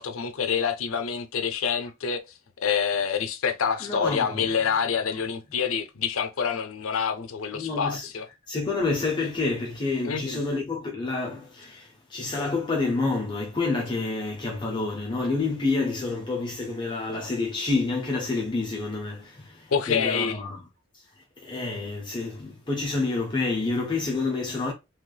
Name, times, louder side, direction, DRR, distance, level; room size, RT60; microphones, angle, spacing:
voice 1, 0.0-2.2 2.6-8.3 10.0-10.4 19.7-20.4, left 6 dB, 80° left, 0.6 m, -27 dB
voice 2, 3.8-4.5 7.5-8.1 8.5-20.6 21.4-24.7, left 3 dB, 20° left, 0.6 m, -28 dB
3.2 x 3.0 x 2.2 m
head